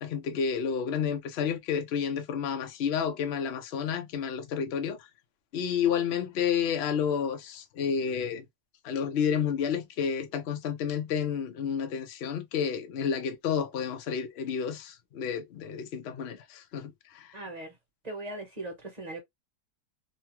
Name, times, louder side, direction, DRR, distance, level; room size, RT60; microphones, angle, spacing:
voice 1, 0.0-5.0 5.5-8.4 8.8-17.3, left 7 dB, 65° left, 0.6 m, -30 dB
voice 2, 17.3-17.7 18.0-19.2, right 2 dB, 30° right, 1.0 m, -39 dB
3.0 x 2.3 x 2.8 m
omnidirectional pair, 1.8 m